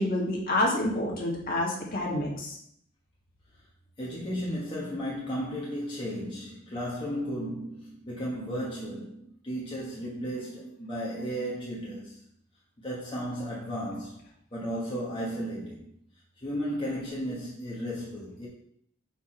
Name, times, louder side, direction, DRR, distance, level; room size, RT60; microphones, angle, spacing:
voice 1, 0.0-2.6, left 1 dB, 45° left, -3 dB, 1.7 m, -28 dB
voice 2, 4.0-12.2 12.8-14.2 14.5-15.9 16.4-18.5, equal, 25° left, -6 dB, 1.2 m, -34 dB
6.0 x 4.5 x 4.3 m, 0.68 s
head